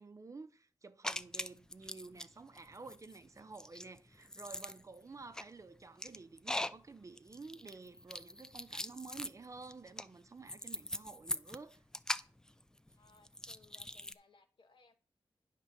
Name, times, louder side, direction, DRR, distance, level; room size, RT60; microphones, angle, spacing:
voice 1, 0.0-11.8, right 4 dB, 35° right, 0.6 m, -51 dB
sound 1, 1.0-2.3 2.5-14.1, left 1 dB, 5° left, 0.4 m, -42 dB
voice 2, 13.0-14.9, left 4 dB, 65° left, 1.2 m, -65 dB
9.7 x 3.7 x 6.5 m
wide cardioid pair, 105°, 9 cm